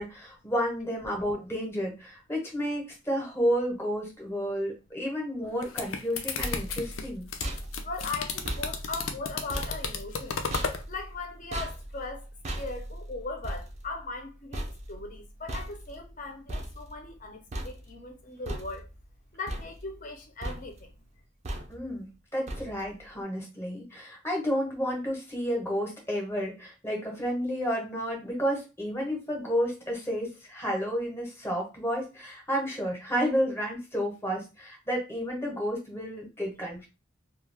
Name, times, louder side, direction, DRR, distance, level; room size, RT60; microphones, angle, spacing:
voice 1, 0.0-7.3 21.7-36.9, equal, 15° left, 0.8 m, -31 dB
sound 1, 5.4-10.8, left 5 dB, 85° left, 0.5 m, -34 dB
sound 2, 6.0-17.2 17.5-18.1 18.5-19.1 19.5-20.2 20.4-20.9 21.4-22.0 22.5-23.0, right 1 dB, 35° right, 0.5 m, -39 dB
voice 2, 7.8-10.4 10.9-12.3 12.6-18.9 19.3-20.9, left 3 dB, 40° left, 0.6 m, -39 dB
2.3 x 2.3 x 3.2 m
head